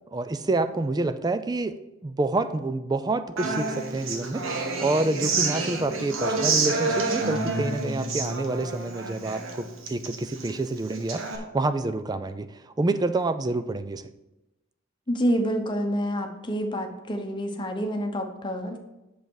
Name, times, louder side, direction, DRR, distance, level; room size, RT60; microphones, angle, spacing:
voice 1, 0.1-14.1, right 2 dB, 20° right, 12 dB, 0.4 m, -28 dB
Human voice / Acoustic guitar, 3.4-11.4, right 3 dB, 80° right, 1.2 m, -29 dB
voice 2, 15.1-18.8, equal, 25° left, 4 dB, 0.9 m, -28 dB
7.8 x 6.6 x 4.7 m, 0.99 s
head